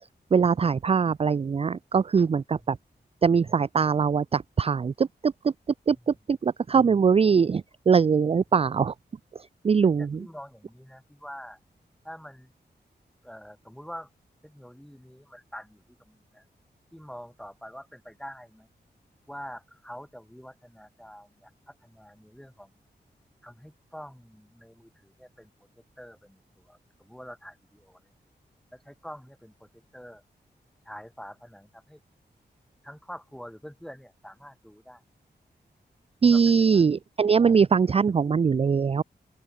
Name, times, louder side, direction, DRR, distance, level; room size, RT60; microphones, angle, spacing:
voice 1, 0.3-2.8 3.2-5.5 5.9-8.9 9.6-10.2 36.2-39.0, right 6 dB, 35° right, 0.4 m, -22 dB
voice 2, 9.8-11.6 12.0-12.5 13.2-14.1 14.4-16.4 16.9-18.7 19.3-22.7 23.4-25.5 26.0-26.4 26.7-28.0 28.7-30.2 30.9-32.0 32.8-35.0 36.2-36.9, equal, 5° left, 2.4 m, -45 dB
open air
cardioid pair, 60°, 18 cm